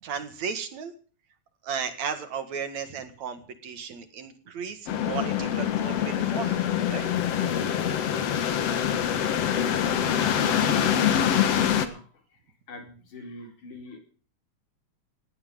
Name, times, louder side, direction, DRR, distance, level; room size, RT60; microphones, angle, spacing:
voice 1, 0.0-0.9 1.6-7.1, right 6 dB, 65° right, 9 dB, 3.1 m, -35 dB
sound 1, 4.9-11.9, left 9 dB, 60° left, 2.3 m, -25 dB
voice 2, 11.4-12.4 12.7-14.0, left 2 dB, 80° left, 3 dB, 5.6 m, -42 dB
19.0 x 17.5 x 3.8 m, 0.42 s
omnidirectional pair, 3.5 m